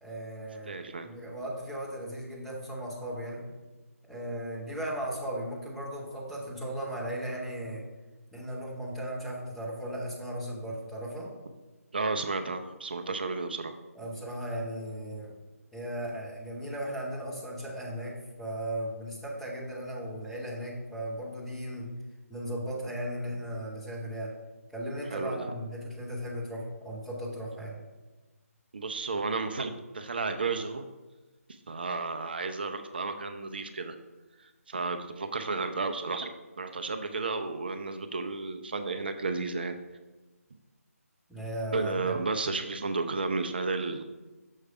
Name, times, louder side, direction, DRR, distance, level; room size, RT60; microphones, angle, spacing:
voice 1, 0.0-3.5 4.0-7.8 8.3-11.3 13.9-15.3 15.7-21.9 22.3-24.3 24.7-27.8 41.3-42.1, right 1 dB, ahead, -9 dB, 1.0 m, -36 dB
voice 2, 0.7-1.1 11.9-13.7 25.1-25.4 28.7-30.9 31.7-34.0 34.4-36.3 36.6-39.8 41.7-44.1, right 3 dB, 40° right, 7 dB, 0.4 m, -32 dB
6.3 x 3.3 x 5.5 m, 1.2 s
figure-of-eight pair, 150°, 8 cm